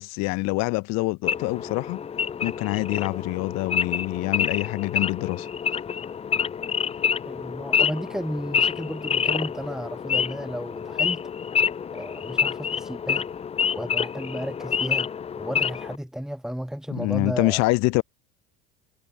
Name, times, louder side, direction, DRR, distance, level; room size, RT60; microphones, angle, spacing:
voice 1, 0.0-2.0 2.4-5.5 16.9-18.0, left 24 dB, 60° left, 1.0 m, -25 dB
Wild animals / Idling, 1.2-16.0, left 7 dB, 20° left, 0.6 m, -27 dB
voice 2, 7.3-11.2 11.9-13.3 13.7-15.1 15.4-17.7, equal, ahead, 4.0 m, -33 dB
supercardioid pair, 105°, 29 cm